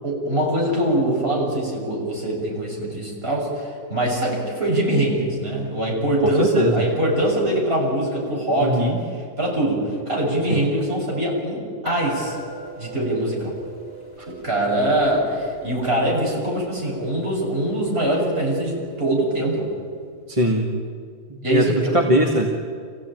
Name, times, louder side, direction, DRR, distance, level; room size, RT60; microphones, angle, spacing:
voice 1, 0.0-9.0 9.4-12.4 12.8-13.5 14.4-19.7 21.4-21.9, right 1 dB, 40° right, -2 dB, 7.3 m, -23 dB
voice 2, 6.2-6.9 8.6-9.0 10.5-10.6 20.3-20.9 21.4-22.5, equal, 20° right, -1 dB, 1.9 m, -21 dB
sound 1, 11.9-19.5, right 1 dB, 15° left, 3.8 m, -41 dB
27.0 x 16.0 x 9.1 m, 2.1 s
omnidirectional pair, 1.6 m